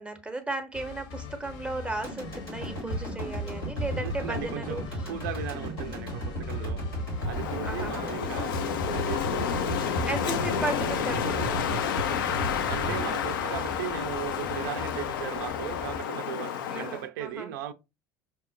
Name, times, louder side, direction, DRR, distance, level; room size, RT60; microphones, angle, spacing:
voice 1, 0.0-5.1 7.6-8.1 10.1-11.6 16.7-17.5, right 2 dB, 10° right, 0.6 m, -35 dB
sound 1, 0.7-16.0, left 4 dB, 45° left, 0.8 m, -42 dB
sound 2, 2.0-14.3 14.6-14.7, right 1 dB, 90° left, 1.7 m, -35 dB
voice 2, 4.0-4.8 5.1-6.8 7.2-8.6 8.9-9.8 12.7-17.7, right 11 dB, 60° right, 0.4 m, -37 dB
Wind, 7.2-17.1, left 8 dB, 65° left, 0.4 m, -30 dB
5.6 x 2.1 x 2.6 m
figure-of-eight pair, 65°, 12 cm